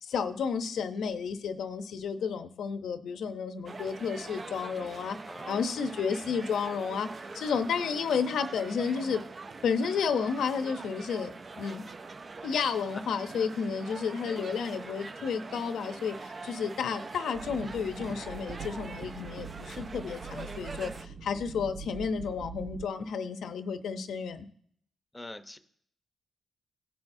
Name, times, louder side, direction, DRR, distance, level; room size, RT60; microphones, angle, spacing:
voice 1, 0.0-5.2 5.5-9.2 9.6-11.9 12.4-24.5, left 6 dB, 80° left, 10 dB, 0.7 m, -32 dB
sound 1, 3.7-21.1, right 3 dB, 35° right, 0.5 m, -43 dB
voice 2, 5.3-5.7 12.9-13.0 25.1-25.6, left 1 dB, 10° left, 8 dB, 0.8 m, -44 dB
sound 2, 17.3-22.9, right 6 dB, 60° right, 0.9 m, -43 dB
16.5 x 5.6 x 2.7 m, 0.64 s
cardioid pair, 90°, 0 cm